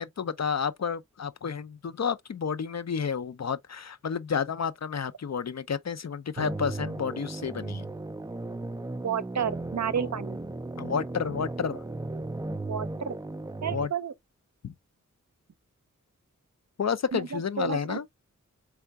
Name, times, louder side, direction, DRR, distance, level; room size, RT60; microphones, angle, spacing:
voice 1, 0.0-7.8 10.0-10.1 10.8-11.8 13.7-13.9 14.6-14.7 16.8-18.0, left 6 dB, 55° left, 0.5 m, -31 dB
sound 1, 6.4-13.9, right 2 dB, 10° right, 0.4 m, -36 dB
voice 2, 9.0-10.4 12.7-13.2 13.6-14.1 17.1-18.0, right 7 dB, 60° right, 0.6 m, -31 dB
3.7 x 3.4 x 3.4 m
wide cardioid pair, 55°, 31 cm